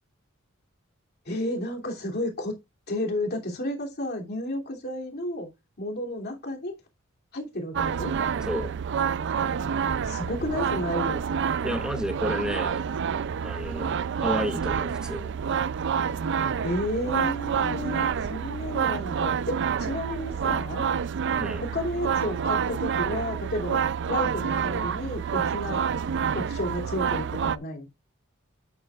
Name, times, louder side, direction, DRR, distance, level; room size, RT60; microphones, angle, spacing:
voice 1, 1.2-2.6 2.9-5.5 5.8-6.7 7.3-8.1 10.0-11.2 16.6-20.9 21.6-25.9 26.3-27.9, left 1 dB, 50° left, 2.9 m, -32 dB
sound 1, 7.7-27.6, right 7 dB, 60° right, 0.4 m, -28 dB
voice 2, 11.6-12.8 13.4-15.3 21.4-21.6, equal, 5° right, 2.0 m, -31 dB
11.0 x 8.7 x 2.4 m
head